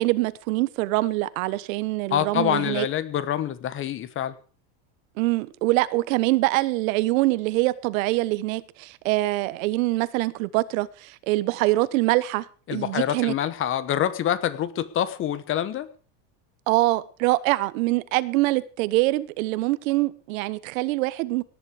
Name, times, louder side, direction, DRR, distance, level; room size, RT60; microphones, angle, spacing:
voice 1, 0.0-2.9 5.2-12.5 12.7-13.3 16.7-21.4, right 19 dB, 80° right, 1.1 m, -24 dB
voice 2, 2.1-4.4 12.7-15.9, left 10 dB, 30° left, 1.1 m, -26 dB
17.5 x 10.5 x 4.9 m
cardioid pair, 155°, 40 cm